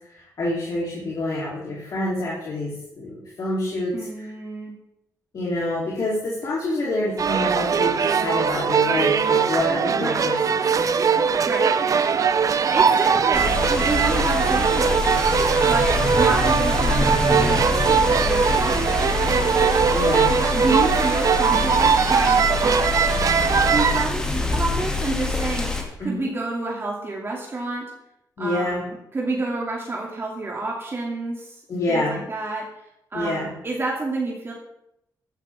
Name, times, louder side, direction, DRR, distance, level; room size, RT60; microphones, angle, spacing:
voice 1, 0.1-4.3 5.3-10.6 19.9-20.3 26.0-26.3 28.4-28.8 31.7-32.2 33.1-33.5, left 1 dB, 55° left, -6 dB, 3.1 m, -27 dB
voice 2, 3.9-4.7 10.0-10.2 11.5-11.7 12.7-15.1 15.7-17.7 18.2-19.5 20.3-22.9 23.7-25.7 26.0-27.9 28.4-31.6 31.9-32.7 33.1-34.5, right 3 dB, 35° right, -2 dB, 2.4 m, -29 dB
sound 1, 7.2-24.1, right 6 dB, 50° right, 0.8 m, -20 dB
sound 2, 13.3-25.8, left 3 dB, 10° left, 2.3 m, -25 dB
16.0 x 11.5 x 3.5 m, 0.82 s
cardioid pair, 100°, 7 cm